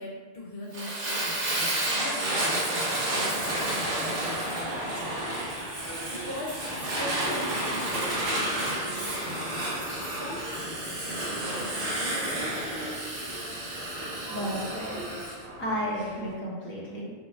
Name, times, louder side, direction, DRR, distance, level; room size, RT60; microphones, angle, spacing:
voice 1, 0.0-5.1 6.1-12.6, left 1 dB, 60° left, -4 dB, 0.8 m, -41 dB
Fire, 0.7-15.3, right 1 dB, 75° right, 1.2 m, -31 dB
sound 1, 3.2-16.3, equal, 35° right, 0.9 m, -42 dB
voice 2, 14.3-15.0 15.6-17.1, equal, 15° left, -6 dB, 0.6 m, -32 dB
3.0 x 2.2 x 4.2 m, 1.4 s
omnidirectional pair, 1.2 m